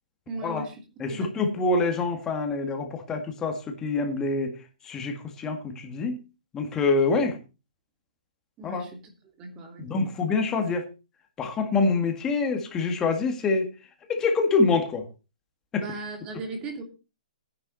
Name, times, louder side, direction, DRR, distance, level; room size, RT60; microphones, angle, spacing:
voice 1, 0.3-0.8 1.1-1.6 8.6-9.0 9.4-9.9 15.8-16.8, right 2 dB, 15° right, 4 dB, 2.9 m, -37 dB
voice 2, 1.0-4.5 4.8-6.2 6.5-7.4 8.6-8.9 9.8-10.8 11.4-13.7 14.1-15.0 15.7-15.8, left 3 dB, 10° left, 5 dB, 1.8 m, -25 dB
14.5 x 10.0 x 4.1 m, 0.30 s
hypercardioid pair, 170°, 5 cm